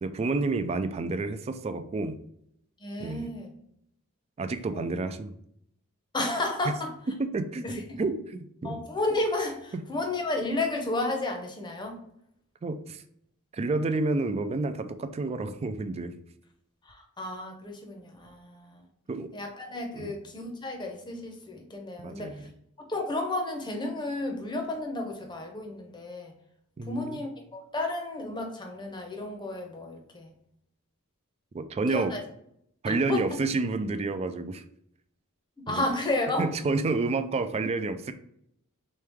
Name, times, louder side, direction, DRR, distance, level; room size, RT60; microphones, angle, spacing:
voice 1, 0.0-2.2 3.0-3.3 4.4-5.3 7.2-7.7 8.0-8.8 9.7-9.8 12.6-13.0 13.5-16.1 19.1-19.3 19.9-20.1 22.0-22.5 26.8-27.2 31.5-32.1 32.8-34.6 35.7-35.8 36.4-38.1, right 3 dB, 30° right, 10 dB, 0.3 m, -29 dB
voice 2, 2.8-3.5 4.7-4.9 6.1-6.9 7.6-7.8 8.6-12.0 16.9-18.8 19.3-22.3 22.9-26.3 26.9-30.3 31.9-32.2 32.9-33.4 35.7-36.5, left 2 dB, 20° left, 3 dB, 0.7 m, -32 dB
3.3 x 3.2 x 3.4 m, 0.73 s
head